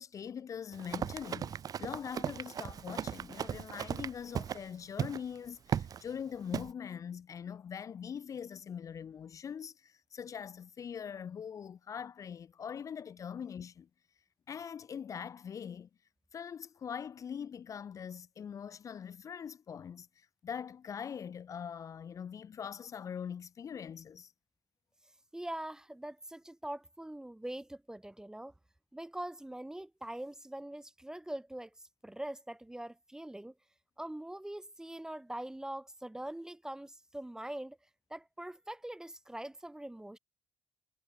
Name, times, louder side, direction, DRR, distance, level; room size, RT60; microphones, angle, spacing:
voice 1, 0.0-1.5 1.8-13.9 14.5-15.9 16.3-24.3, left 7 dB, 40° left, 0.6 m, -42 dB
Run, 0.7-4.6 5.0-5.2 5.7-6.0 6.5-6.7, right 8 dB, 45° right, 1.2 m, -37 dB
voice 2, 25.3-28.5 28.9-31.7 32.0-33.5 34.0-37.8 38.1-40.2, right 1 dB, 5° right, 0.6 m, -43 dB
supercardioid pair, 70°, 8 cm